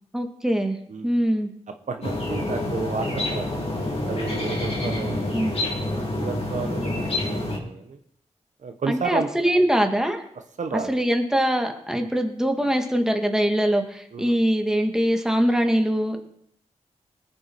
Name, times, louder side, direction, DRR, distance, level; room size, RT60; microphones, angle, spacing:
voice 1, 0.1-0.8 1.0-1.5 5.3-5.6 8.9-10.2 10.9-16.2, equal, 5° right, 4 dB, 2.1 m, -22 dB
voice 2, 1.9-3.5 4.1-5.5 5.8-8.0 8.6-9.3 10.6-10.9 12.0-12.1 14.1-14.3, right 5 dB, 75° right, 6 dB, 1.2 m, -32 dB
sound 1, 2.0-7.6, left 1 dB, 50° left, 3.5 m, -27 dB
20.0 x 7.3 x 4.7 m, 0.70 s
cardioid pair, 65°, 13 cm